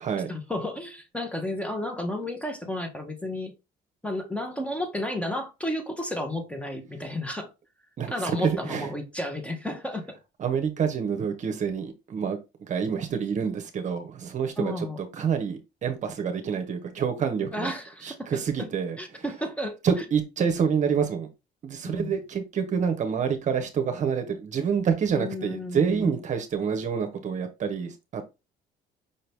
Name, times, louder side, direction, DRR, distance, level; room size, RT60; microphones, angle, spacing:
voice 1, 0.3-3.5 4.0-7.5 8.1-10.2 14.6-15.0 17.5-18.3 18.6-18.7 19.0-20.0 21.8-22.1 25.2-26.1, left 1 dB, 5° left, 1.0 m, -32 dB
voice 2, 8.4-8.9 10.4-17.7 18.0-19.2 19.8-21.3 21.6-28.2, right 7 dB, 45° right, 0.8 m, -27 dB
5.4 x 2.8 x 3.4 m
cardioid pair, 110°, 17 cm